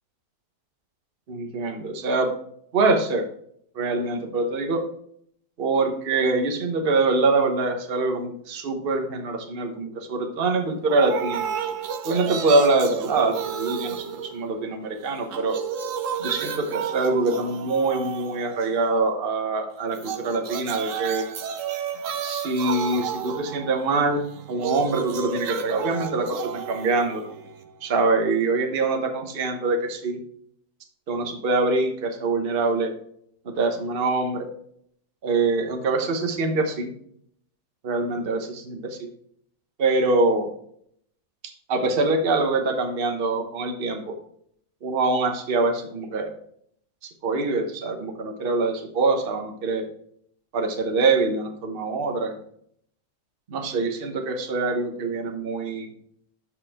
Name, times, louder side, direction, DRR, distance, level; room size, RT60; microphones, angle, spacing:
voice 1, 1.3-2.3 2.7-3.2 3.7-4.8 5.6-11.5 12.0-15.6 16.2-21.3 22.2-24.2 24.5-27.2 27.8-30.2 31.1-32.9 33.4-34.5 35.2-36.9 37.8-39.1 39.8-40.5 41.4-44.1 44.8-46.4 47.0-49.9 50.5-52.4 53.5-55.9, right 3 dB, 35° right, 4 dB, 1.2 m, -24 dB
sound 1, 10.9-14.9 15.2-18.9 19.9-27.9, right 8 dB, 60° right, 1.0 m, -32 dB
12.0 x 5.4 x 3.6 m, 0.67 s
omnidirectional pair, 1.9 m